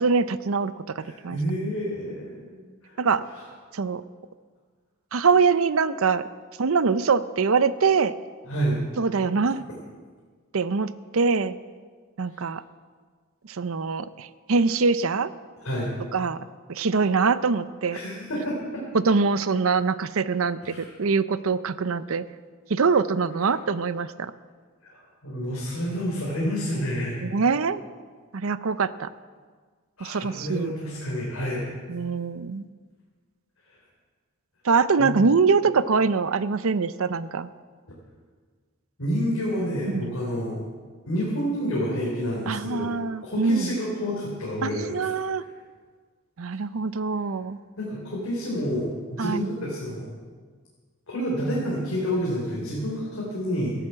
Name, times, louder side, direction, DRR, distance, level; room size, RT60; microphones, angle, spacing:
voice 1, 0.0-1.4 3.0-3.2 3.7-4.0 5.1-6.3 6.6-8.1 9.0-9.6 10.5-11.6 12.2-12.6 13.5-15.3 16.1-16.4 16.7-18.0 18.9-22.3 22.7-24.3 27.2-27.8 28.3-29.1 30.0-30.7 31.9-32.7 34.6-37.5 39.9-40.2 42.5-43.8 44.6-45.4 46.4-47.6 49.2-49.5, right 4 dB, 70° right, 15 dB, 0.6 m, -23 dB
voice 2, 1.0-3.0 3.3-3.4 8.5-8.8 15.6-15.9 17.9-18.8 20.6-20.9 24.8-24.9 25.2-27.2 30.0-31.7 35.0-35.1 39.0-40.6 41.1-42.9 43.2-45.1 47.8-50.1 51.1-53.7, equal, 75° left, -5 dB, 3.8 m, -29 dB
14.0 x 11.0 x 7.6 m, 1.6 s
head